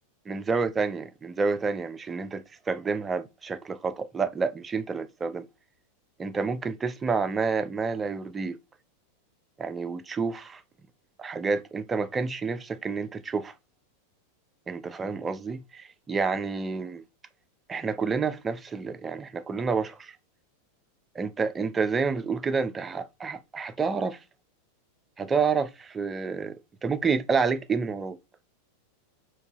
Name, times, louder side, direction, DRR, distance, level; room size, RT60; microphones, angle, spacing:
voice 1, 0.3-5.5 6.2-8.6 9.6-10.6 11.2-13.5 14.7-17.0 17.7-20.2 21.2-24.2 25.2-28.2, right 5 dB, 20° right, 0.4 m, -29 dB
3.7 x 2.7 x 2.3 m
figure-of-eight pair, 90°, 0 cm